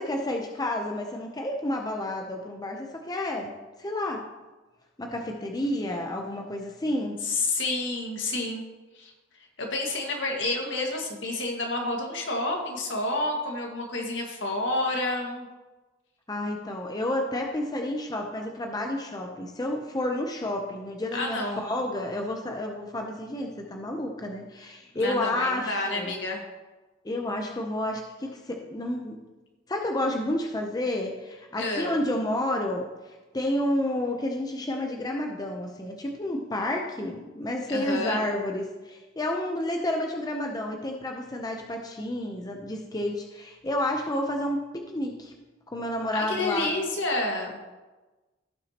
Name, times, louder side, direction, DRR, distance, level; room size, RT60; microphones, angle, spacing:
voice 1, 0.0-3.5 3.8-4.2 5.0-7.2 16.3-26.1 27.0-29.2 29.7-45.3 45.7-46.7, left 1 dB, 20° left, 2 dB, 0.7 m, -30 dB
voice 2, 7.2-8.6 9.0-9.1 9.6-15.5 21.1-21.6 25.0-26.4 31.6-32.0 37.7-38.2 46.1-47.6, left 2 dB, 70° left, 1 dB, 1.8 m, -29 dB
15.5 x 6.1 x 3.0 m, 1.2 s
head